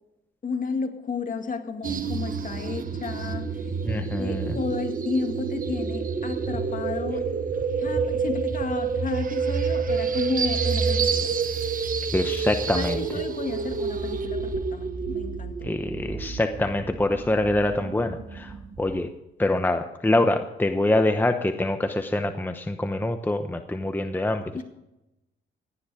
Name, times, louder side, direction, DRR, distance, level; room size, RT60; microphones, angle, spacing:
voice 1, 0.4-3.5 4.2-7.3 7.8-11.4 12.7-15.7 24.5-24.6, left 4 dB, 40° left, 5 dB, 2.2 m, -32 dB
sound 1, 1.8-19.0, right 5 dB, 45° right, 1.4 m, -28 dB
voice 2, 3.8-4.6 12.1-13.0 15.6-18.5 18.8-19.1 19.4-24.4, left 1 dB, 10° left, 7 dB, 0.9 m, -25 dB
17.0 x 10.0 x 5.0 m, 0.91 s
cardioid pair, 90°, 20 cm